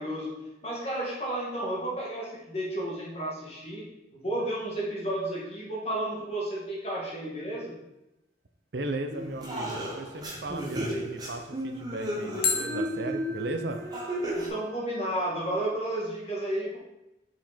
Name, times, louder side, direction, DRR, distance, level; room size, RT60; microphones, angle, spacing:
voice 1, 0.0-3.9 4.1-7.8 14.3-16.8, right 1 dB, 35° left, -5 dB, 2.0 m, -32 dB
sound 1, 4.4-5.4 12.4-15.4, left 4 dB, 50° left, 1.1 m, -36 dB
voice 2, 8.7-13.8, right 2 dB, 70° right, 6 dB, 0.7 m, -36 dB
sound 2, 9.1-14.5, equal, 20° right, 1.1 m, -33 dB
5.7 x 5.1 x 4.3 m, 0.92 s
head